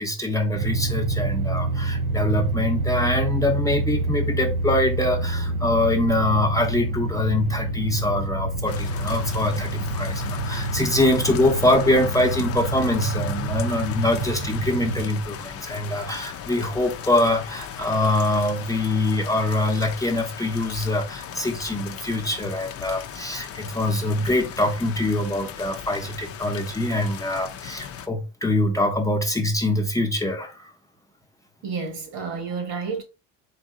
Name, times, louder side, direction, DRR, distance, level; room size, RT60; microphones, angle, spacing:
voice 1, 0.0-30.7, left 1 dB, 10° left, 0.7 m, -24 dB
sound 1, 0.5-15.0, right 2 dB, 60° right, 0.7 m, -27 dB
sound 2, 8.7-28.1, left 8 dB, 40° left, 0.5 m, -37 dB
voice 2, 31.6-33.0, right 5 dB, 80° right, 1.6 m, -30 dB
4.1 x 2.7 x 3.5 m
supercardioid pair, 105°, 38 cm